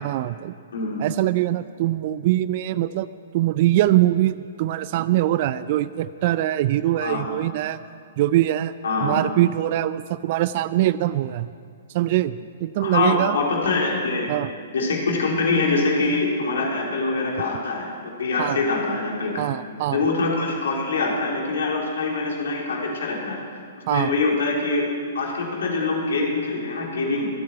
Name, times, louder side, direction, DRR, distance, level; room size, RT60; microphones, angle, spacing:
voice 1, 0.0-0.5 1.0-3.1 3.3-7.8 8.2-8.7 9.0-11.5 11.9-13.4 14.3-14.5 18.4-18.6 19.4-20.0 23.9-24.1, right 14 dB, 50° right, 16 dB, 0.4 m, -22 dB
voice 2, 8.8-9.2 12.8-14.3 14.7-17.9 18.2-19.3 19.9-23.6 23.9-24.8 25.1-27.3, left 3 dB, 70° left, -2 dB, 3.7 m, -24 dB
25.0 x 8.7 x 4.7 m, 2.2 s
hypercardioid pair, 120°, 0 cm